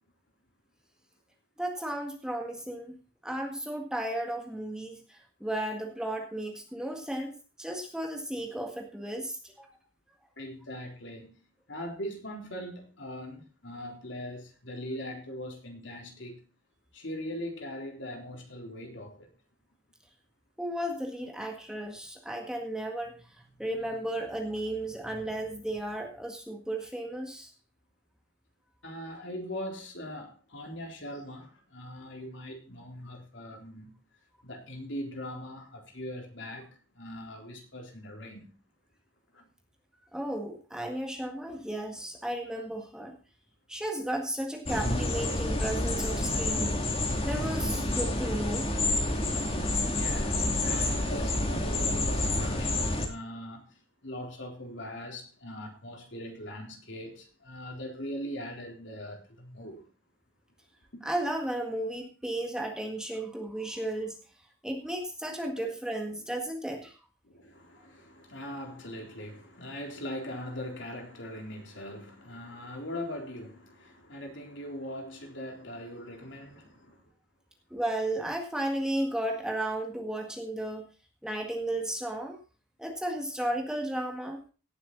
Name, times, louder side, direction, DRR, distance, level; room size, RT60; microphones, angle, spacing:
voice 1, 1.6-2.9 3.2-7.3 7.6-9.7 20.6-23.1 23.6-27.5 40.1-43.2 43.7-48.7 61.0-64.2 64.6-66.9 77.7-80.9 81.2-82.4 82.8-84.4, right 1 dB, 5° right, 1.8 m, -34 dB
voice 2, 10.4-11.3 11.7-16.4 16.9-19.3 28.8-33.9 34.4-38.5 39.3-39.5 49.9-53.7 54.0-59.8 60.9-61.0 65.5-65.6 66.7-66.8 67.2-77.0, left 1 dB, 60° left, 3.7 m, -41 dB
sound 1, 44.7-53.1, left 2 dB, 30° left, 2.6 m, -29 dB
17.5 x 8.1 x 4.0 m
head